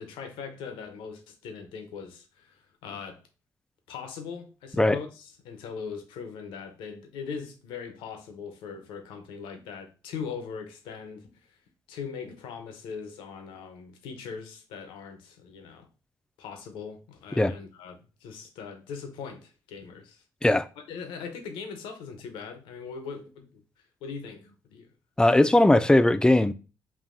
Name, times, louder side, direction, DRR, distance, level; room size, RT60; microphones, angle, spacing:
voice 1, 0.0-3.2 3.9-11.6 11.9-15.9 16.4-20.2 20.9-23.6 24.0-24.9, left 6 dB, 85° left, 0.7 m, -40 dB
voice 2, 25.2-26.5, left 1 dB, 10° left, 0.3 m, -19 dB
5.5 x 2.6 x 2.5 m
supercardioid pair, 60°, 8 cm